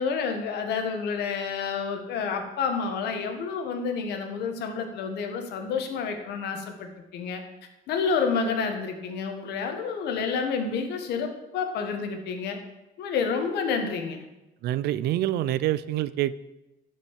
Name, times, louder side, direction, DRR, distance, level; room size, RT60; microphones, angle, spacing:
voice 1, 0.0-7.4 7.9-12.6 13.0-14.2, left 5 dB, 75° left, 5 dB, 1.8 m, -29 dB
voice 2, 14.6-16.4, right 13 dB, 75° right, 17 dB, 0.5 m, -26 dB
12.0 x 5.6 x 6.6 m, 0.96 s
cardioid pair, 110°, 17 cm